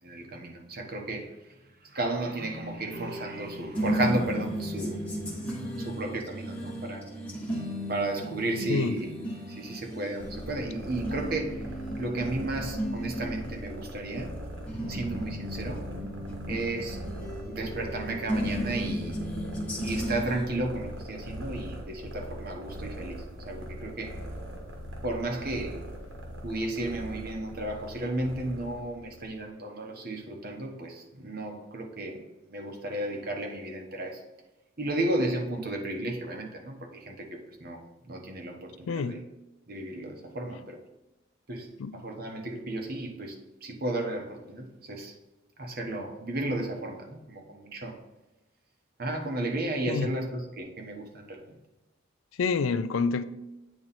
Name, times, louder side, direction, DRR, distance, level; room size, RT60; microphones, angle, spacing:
voice 1, 0.0-5.5 5.8-7.1 7.9-9.1 9.5-14.4 14.9-15.8 16.5-17.0 17.5-19.3 19.8-24.2 25.0-25.8 26.4-32.2 32.5-34.2 34.8-39.2 39.7-40.8 41.5-45.2 45.6-48.0 49.0-51.6, right 2 dB, 50° right, 1.0 m, -34 dB
sound 1, 2.9-20.4, equal, 5° left, 1.1 m, -35 dB
sound 2, 10.2-29.4, equal, 70° right, 1.4 m, -41 dB
voice 2, 38.9-39.2 41.8-41.9 49.9-50.1 52.4-53.2, left 5 dB, 90° left, 0.4 m, -27 dB
8.8 x 3.1 x 4.1 m
head